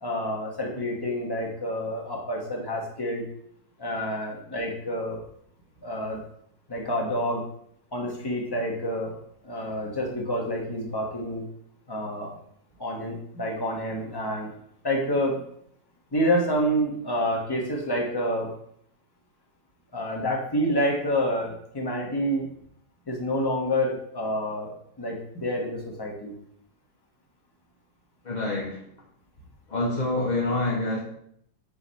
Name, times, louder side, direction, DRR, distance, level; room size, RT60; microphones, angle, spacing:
voice 1, 0.0-3.3 3.8-5.2 5.8-6.2 6.7-7.4 7.9-9.1 9.4-11.4 11.9-12.3 12.8-14.5 14.8-15.4 16.1-18.5 19.9-22.5 23.1-24.7 25.0-26.3, equal, 15° left, -2 dB, 1.1 m, -28 dB
voice 2, 28.2-28.8 29.7-31.0, left 2 dB, 35° left, -3 dB, 0.8 m, -26 dB
6.3 x 3.2 x 5.6 m, 0.68 s
omnidirectional pair, 2.0 m